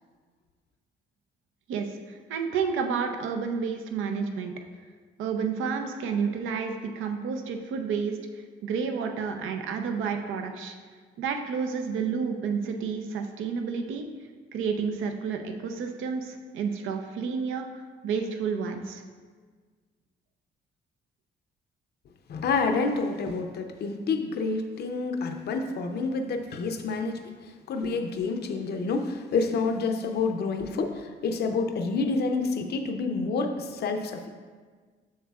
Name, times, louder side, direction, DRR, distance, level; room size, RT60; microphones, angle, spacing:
voice 1, 1.7-4.6 5.2-8.2 8.6-10.7 11.2-14.0 14.5-19.0, right 6 dB, 80° right, 5 dB, 0.6 m, -30 dB
voice 2, 22.3-34.3, left 4 dB, 55° left, 5 dB, 0.6 m, -28 dB
7.3 x 6.5 x 2.4 m, 1.5 s
cardioid pair, 90°, 20 cm